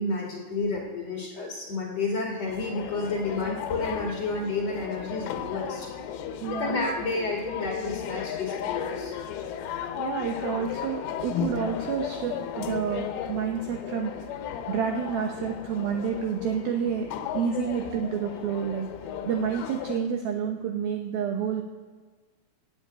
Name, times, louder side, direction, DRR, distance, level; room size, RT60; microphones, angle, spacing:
voice 1, 0.0-5.9 6.5-9.1 17.6-18.0, left 3 dB, 45° left, -1 dB, 2.4 m, -31 dB
sound 1, 2.5-20.0, left 9 dB, 90° left, 3.6 m, -35 dB
voice 2, 6.2-6.8 10.0-14.4 14.7-21.6, right 7 dB, 80° right, 3 dB, 2.2 m, -29 dB
15.5 x 7.7 x 9.0 m, 1.4 s
omnidirectional pair, 5.5 m